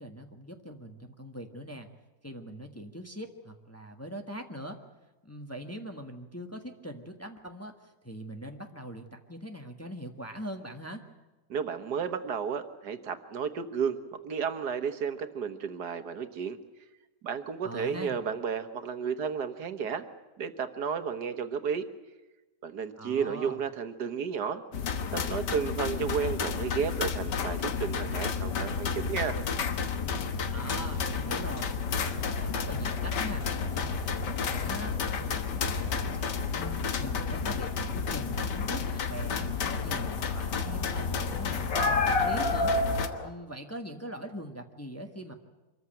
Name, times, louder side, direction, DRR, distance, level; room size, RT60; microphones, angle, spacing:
voice 1, 0.0-1.9 2.2-4.8 5.2-7.7 8.0-11.0 17.6-18.2 23.0-23.6 30.5-31.8 32.0-33.4 33.7-34.9 35.2-42.7 43.2-45.3, equal, 10° left, 4 dB, 1.4 m, -42 dB
voice 2, 11.5-14.0 14.2-16.6 17.2-20.1 20.4-21.9 22.6-24.6 25.1-29.4, right 6 dB, 75° right, 9 dB, 1.8 m, -32 dB
sound 1, 24.7-43.1, left 5 dB, 90° left, 1.9 m, -31 dB
sound 2, 30.8-43.3, left 2 dB, 55° left, 2.3 m, -35 dB
25.0 x 14.5 x 9.0 m, 1.1 s
omnidirectional pair, 1.8 m